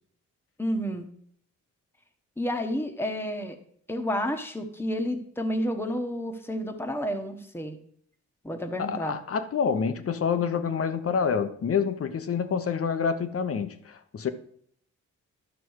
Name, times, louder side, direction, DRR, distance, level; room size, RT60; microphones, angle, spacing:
voice 1, 0.6-1.1 2.4-3.6 3.9-7.8 8.4-9.2, equal, 10° left, 1.2 m, -30 dB
voice 2, 8.8-14.3, left 6 dB, 50° left, 0.9 m, -27 dB
11.5 x 6.1 x 4.7 m
cardioid pair, 115°, 30 cm